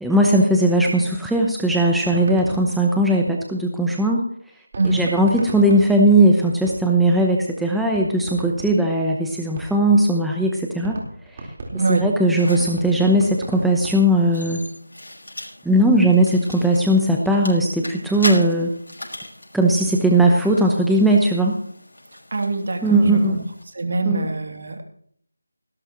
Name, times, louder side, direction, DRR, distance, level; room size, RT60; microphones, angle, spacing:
voice 1, 0.0-4.3 4.9-11.0 11.9-14.6 15.6-18.7 19.5-21.6 22.8-23.4 24.1-24.2, right 1 dB, ahead, -1 dB, 0.8 m, -18 dB
sound 1, 2.0-3.7 4.7-7.2 7.5-7.6 7.9-10.0 10.4-10.5 10.8-14.5, right 2 dB, 30° right, 4.1 m, -36 dB
voice 2, 4.7-5.1 11.7-12.1 22.3-23.4 23.7-24.9, right 3 dB, 50° right, 3 dB, 2.9 m, -24 dB
sound 2, 12.4-23.6, left 1 dB, 80° left, 5.5 m, -37 dB
18.5 x 16.5 x 3.1 m, 0.64 s
figure-of-eight pair, 170°, 0 cm